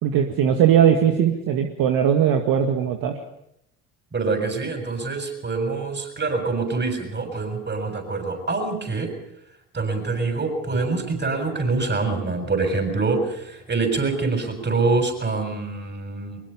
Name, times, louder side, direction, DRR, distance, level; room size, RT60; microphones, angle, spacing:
voice 1, 0.0-3.1, right 9 dB, 50° right, 4 dB, 2.0 m, -19 dB
voice 2, 4.1-9.1 9.7-16.4, right 3 dB, 25° right, 6 dB, 7.0 m, -25 dB
23.0 x 21.0 x 5.6 m, 0.78 s
figure-of-eight pair, 60°, 44 cm